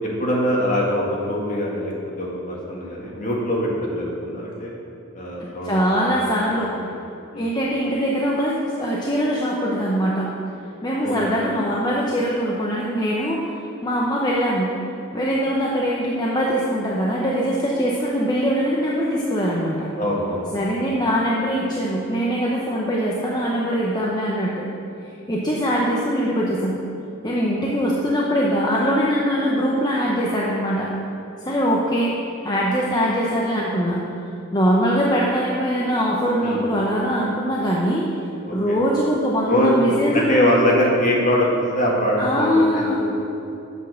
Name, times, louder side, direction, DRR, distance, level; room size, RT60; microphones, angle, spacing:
voice 1, 0.0-4.7 5.1-6.0 6.2-6.3 7.3-7.5 11.0-11.1 20.0-20.5 36.4-36.8 38.5-38.8 39.4-39.8 40.1-41.5 41.7-43.1, equal, 40° left, -4 dB, 1.9 m, -23 dB
voice 2, 5.6-6.7 7.4-10.3 10.8-13.5 13.8-14.7 15.1-19.9 20.5-24.5 25.3-26.8 27.2-30.9 31.4-32.1 32.4-34.0 34.5-38.1 38.5-40.4 42.2-43.0, equal, 20° left, -4 dB, 0.8 m, -22 dB
8.0 x 6.4 x 6.4 m, 2.8 s
head